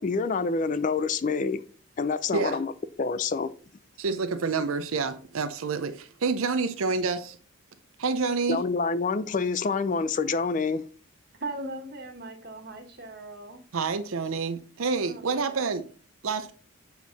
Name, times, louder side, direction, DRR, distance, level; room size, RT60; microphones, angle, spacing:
voice 1, 0.0-1.6 2.0-2.7 3.0-3.5 8.5-10.8, left 4 dB, 35° left, 0.4 m, -27 dB
voice 2, 4.0-7.4 8.0-8.6 13.7-15.8 16.2-16.5, right 4 dB, 70° right, 0.6 m, -28 dB
voice 3, 11.4-13.6 15.0-15.7, right 2 dB, 45° right, 1.5 m, -39 dB
7.2 x 4.6 x 4.0 m
head